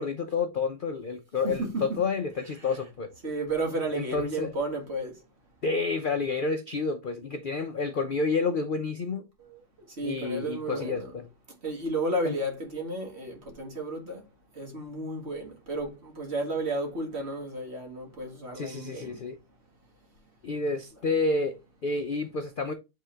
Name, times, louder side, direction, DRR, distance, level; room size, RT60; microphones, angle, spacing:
voice 1, 0.0-3.1 3.9-4.5 5.6-9.3 10.0-11.2 12.2-12.4 18.5-19.4 20.4-22.7, left 4 dB, 60° left, 0.5 m, -29 dB
voice 2, 1.4-2.0 2.6-2.8 3.2-5.2 9.4-9.6 9.9-11.1 11.6-14.3 14.5-19.2, right 2 dB, 40° right, 2.0 m, -33 dB
8.2 x 3.7 x 3.3 m
omnidirectional pair, 1.8 m